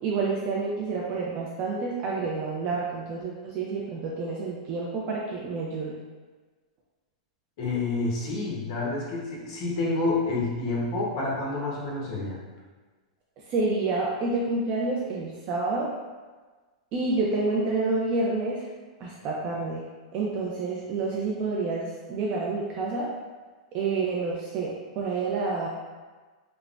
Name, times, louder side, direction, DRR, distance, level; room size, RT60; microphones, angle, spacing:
voice 1, 0.0-5.9 13.5-15.9 16.9-18.6 19.0-19.8 20.1-23.1 23.7-25.7, right 3 dB, 35° right, -4 dB, 0.4 m, -28 dB
voice 2, 7.6-12.4, left 3 dB, 50° left, -4 dB, 0.8 m, -28 dB
3.2 x 2.0 x 2.4 m, 1.3 s
supercardioid pair, 145°, 4 cm